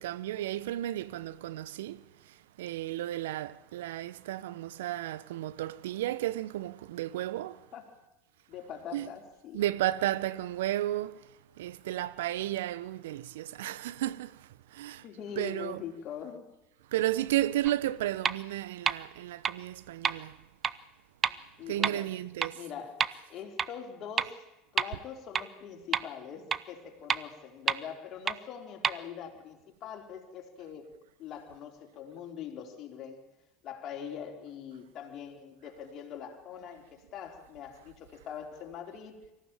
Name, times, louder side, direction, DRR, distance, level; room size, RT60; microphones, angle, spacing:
voice 1, 0.0-2.0 2.3-7.6 8.9-9.1 9.5-11.2 11.6-15.0 15.3-15.8 16.9-20.4 21.7-22.6, right 14 dB, 70° right, 0.9 m, -33 dB
voice 2, 8.5-9.6 15.0-16.5 21.6-22.1 22.5-24.4 24.7-30.9 31.2-33.2 33.6-39.2, left 8 dB, 45° left, 3.9 m, -43 dB
sound 1, 17.6-17.7 18.2-18.3 18.9-19.0 19.4-19.5 20.0-20.1 20.6-20.7 21.2-21.3 21.8-21.9 22.4-22.5 23.0-23.1 23.6-23.7 24.2-24.3 24.8-24.9 25.3-25.4 25.9-26.0 26.5-26.6 27.1-27.2 27.7-27.8 28.3-28.4 28.8-28.9, right 7 dB, 30° right, 0.9 m, -27 dB
24.5 x 15.0 x 9.0 m
figure-of-eight pair, 75°, 0 cm